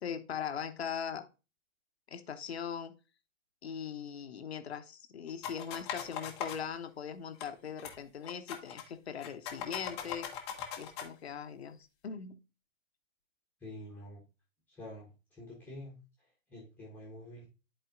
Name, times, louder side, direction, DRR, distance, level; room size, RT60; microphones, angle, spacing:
voice 1, 0.0-1.3 2.1-3.0 3.6-10.3 10.8-11.8 12.0-12.4, left 7 dB, 50° left, 9 dB, 0.9 m, -40 dB
sound 1, 5.4-6.6 7.4-7.5 7.8-8.0 8.2-8.8 9.2-11.1, left 8 dB, 20° left, 0.7 m, -39 dB
voice 2, 13.6-14.2 14.7-17.5, left 1 dB, 5° left, -5 dB, 1.1 m, -48 dB
11.0 x 4.3 x 2.4 m, 0.30 s
figure-of-eight pair, 125°, 41 cm